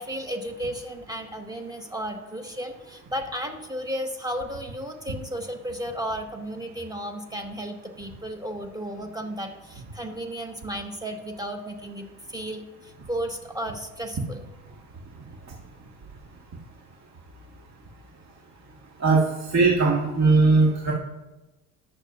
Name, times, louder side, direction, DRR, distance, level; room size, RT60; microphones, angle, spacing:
voice 1, 0.0-14.4, equal, 10° right, 4 dB, 1.8 m, -34 dB
voice 2, 19.5-20.9, right 3 dB, 40° right, -2 dB, 1.9 m, -19 dB
19.0 x 6.7 x 2.6 m, 1.0 s
hypercardioid pair, 65°, 40 cm